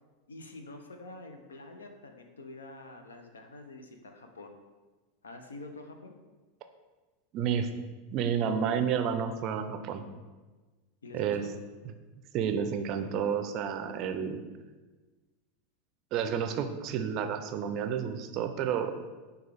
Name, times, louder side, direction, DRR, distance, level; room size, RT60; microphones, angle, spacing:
voice 1, 0.3-4.5 5.2-6.1 11.0-11.5, left 2 dB, 80° left, 5 dB, 0.5 m, -47 dB
voice 2, 7.3-7.7 8.1-10.1 11.1-11.4 12.3-14.4 16.1-18.9, right 7 dB, 45° right, 7 dB, 0.4 m, -30 dB
6.4 x 2.3 x 3.4 m, 1.3 s
figure-of-eight pair, 85°, 0 cm